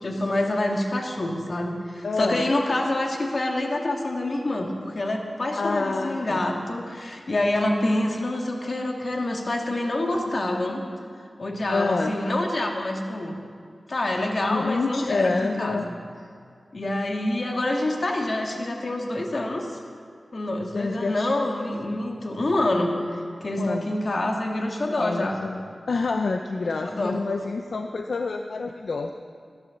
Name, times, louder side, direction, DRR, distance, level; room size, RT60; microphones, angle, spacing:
voice 1, 0.0-10.8 11.4-13.4 13.9-15.9 16.7-19.7 20.3-25.4 26.8-27.2, left 1 dB, 55° left, 1 dB, 2.0 m, -26 dB
voice 2, 2.0-2.5 5.6-6.4 10.3-10.4 11.7-12.1 14.5-15.9 20.7-21.3 23.6-24.0 25.0-29.1, left 3 dB, 80° left, 5 dB, 0.6 m, -28 dB
15.0 x 10.5 x 7.1 m, 2.2 s
wide cardioid pair, 70°, 0 cm